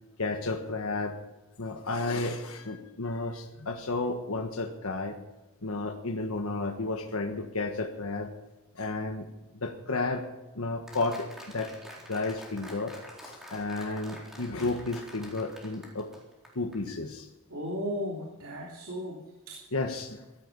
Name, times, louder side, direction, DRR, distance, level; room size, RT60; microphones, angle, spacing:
voice 1, 0.2-1.2 1.6-5.2 5.6-8.3 8.7-9.3 9.5-10.3 10.5-11.7 12.1-13.0 13.2-16.1 16.5-17.3 19.7-20.2, left 3 dB, 75° left, 4 dB, 1.4 m, -32 dB
Applause, 10.9-16.8, equal, ahead, 4.2 m, -47 dB
voice 2, 17.5-19.6, equal, 70° right, -2 dB, 3.2 m, -35 dB
17.5 x 14.0 x 5.4 m, 1.0 s
head